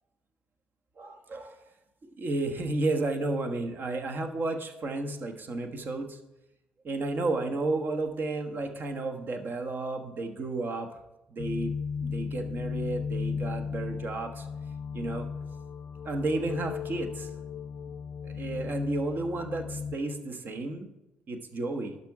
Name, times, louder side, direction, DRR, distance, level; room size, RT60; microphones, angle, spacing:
voice 1, 1.0-1.6 2.2-6.2 6.8-11.0 11.3-11.7 12.0-14.5 14.9-15.3 16.0-17.3 18.2-20.9 21.3-22.0, right 2 dB, 45° right, 5 dB, 1.2 m, -32 dB
sound 1, 11.4-20.0, left 6 dB, 55° left, 0.5 m, -36 dB
11.5 x 4.2 x 4.8 m, 0.96 s
hypercardioid pair, 45°, 5 cm